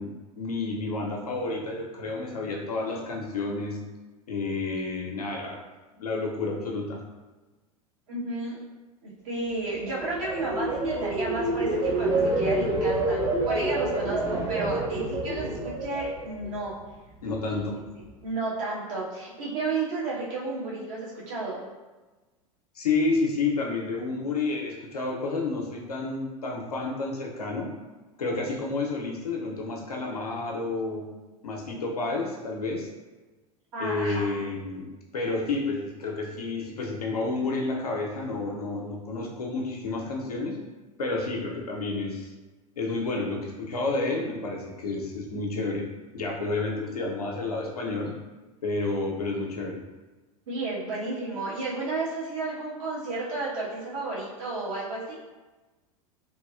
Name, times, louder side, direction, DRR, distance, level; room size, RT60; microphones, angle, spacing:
voice 1, 0.0-3.8 4.3-5.6 5.9-7.0 17.2-17.8 22.8-27.7 28.2-31.0 31.4-32.9 33.8-34.9 35.1-40.6 41.0-42.3 42.8-45.8 46.1-48.1 48.6-49.8, left 3 dB, 85° left, 0 dB, 0.6 m, -30 dB
voice 2, 8.1-8.6 9.0-16.7 18.2-21.6 28.4-28.6 33.7-34.3 50.5-55.2, right 3 dB, 60° right, -6 dB, 1.1 m, -32 dB
sound 1, 9.6-16.8 17.2-17.6, right 2 dB, 15° right, 0.5 m, -28 dB
3.0 x 2.3 x 2.3 m, 1.2 s
figure-of-eight pair, 85°, 19 cm